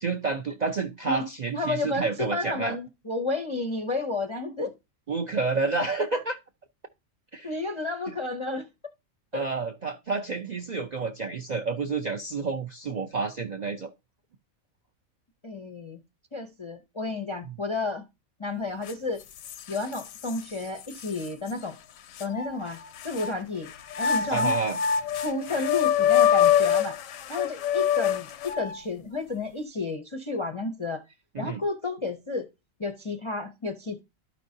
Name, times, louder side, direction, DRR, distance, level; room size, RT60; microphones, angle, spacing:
voice 1, 0.0-2.8 5.1-6.4 7.3-7.5 9.3-13.9 17.4-17.5 24.3-24.8 31.3-31.6, right 4 dB, 50° right, 0.5 m, -29 dB
voice 2, 1.5-4.7 7.4-8.6 9.3-9.5 15.4-16.0 16.3-18.0 18.4-19.2 19.7-21.8 22.2-22.8 23.0-23.7 24.0-24.5 25.1-27.0 27.3-31.0 31.4-32.5 32.8-34.0, left 3 dB, 30° left, 0.5 m, -31 dB
sound 1, 18.9-19.0 19.4-20.4 21.0-21.1 22.2-23.3 23.9-28.8, left 9 dB, 85° left, 1.0 m, -24 dB
12.5 x 5.2 x 2.7 m
omnidirectional pair, 1.4 m